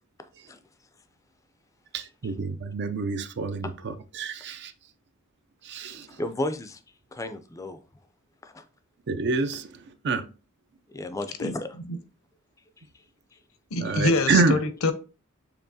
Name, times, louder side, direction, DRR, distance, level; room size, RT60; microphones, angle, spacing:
voice 1, 1.9-4.7 5.6-6.1 9.1-10.2 13.8-14.6, right 4 dB, 55° right, 0.5 m, -27 dB
voice 2, 6.1-6.8 7.1-7.8 8.4-8.7 10.9-11.7, left 1 dB, 15° left, 0.4 m, -33 dB
voice 3, 13.7-14.9, left 2 dB, 70° left, 0.7 m, -25 dB
6.8 x 2.9 x 2.7 m
head